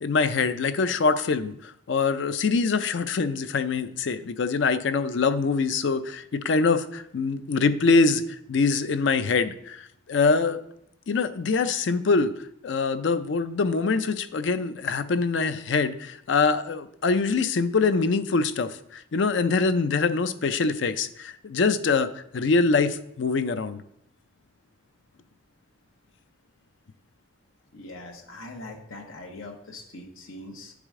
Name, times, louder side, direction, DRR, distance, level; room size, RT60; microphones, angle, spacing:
voice 1, 0.0-8.2 8.5-10.6 11.1-12.3 12.6-23.8, left 4 dB, 65° left, 12 dB, 0.4 m, -24 dB
voice 2, 27.7-30.7, left 2 dB, 85° left, 1 dB, 1.1 m, -42 dB
9.9 x 4.9 x 3.6 m, 0.75 s
head